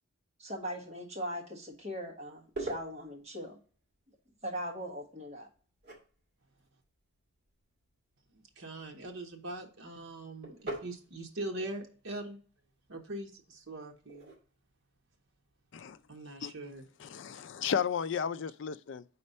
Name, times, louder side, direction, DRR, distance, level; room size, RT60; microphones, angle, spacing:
voice 1, 0.4-3.6 4.4-5.5, equal, 30° right, 1.4 m, -40 dB
sound 1, 1.7-16.8, right 2 dB, 45° right, 2.0 m, -49 dB
voice 2, 8.3-12.4 12.9-14.3 16.1-16.9, right 2 dB, 75° right, 1.0 m, -42 dB
voice 3, 17.0-19.0, left 7 dB, 55° left, 0.3 m, -33 dB
4.3 x 4.2 x 5.4 m
head